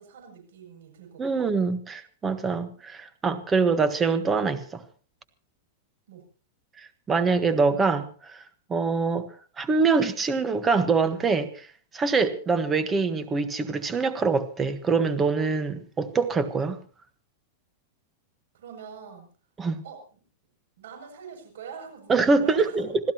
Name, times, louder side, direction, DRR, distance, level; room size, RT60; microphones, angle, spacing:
voice 1, 0.0-1.5 6.1-6.2 18.5-19.3 19.8-20.2 20.8-22.8, right 6 dB, 80° right, 4 dB, 7.6 m, -44 dB
voice 2, 1.2-4.8 6.8-8.4 8.7-9.3 9.6-11.7 11.9-16.8 19.6-19.7 22.1-23.1, right 4 dB, 15° right, 10 dB, 1.4 m, -24 dB
26.5 x 16.0 x 3.0 m, 0.39 s
supercardioid pair, 150°, 0 cm